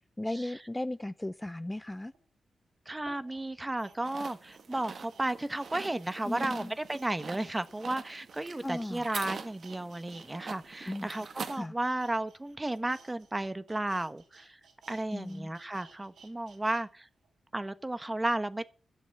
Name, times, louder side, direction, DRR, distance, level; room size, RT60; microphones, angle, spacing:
voice 1, 0.2-2.1 6.3-6.7 8.6-9.0 10.9-11.1 11.6-11.7 15.1-15.5, left 1 dB, 15° left, 0.6 m, -36 dB
sound 1, 2.1-2.2 2.9-10.3 10.5-16.8 17.2-17.3, right 5 dB, 85° right, 3.9 m, -57 dB
voice 2, 2.9-14.6 14.9-17.1 17.5-18.7, right 1 dB, 20° right, 1.1 m, -34 dB
sound 2, 4.0-11.6, right 5 dB, 65° right, 1.6 m, -44 dB
13.0 x 7.2 x 8.4 m
cardioid pair, 65°, 0 cm